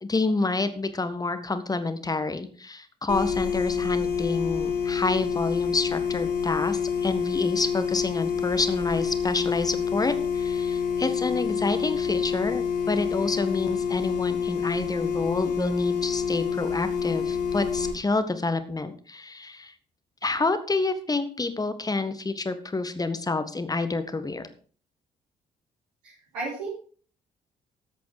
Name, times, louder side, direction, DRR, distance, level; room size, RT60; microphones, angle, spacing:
voice 1, 0.0-19.7 20.2-24.5, left 3 dB, 20° left, 10 dB, 1.7 m, -28 dB
sound 1, 3.1-17.9, left 6 dB, 80° left, 2.3 m, -27 dB
voice 2, 26.0-26.7, right 3 dB, 75° right, -8 dB, 4.4 m, -34 dB
14.0 x 8.2 x 5.0 m, 0.43 s
figure-of-eight pair, 45°, 20 cm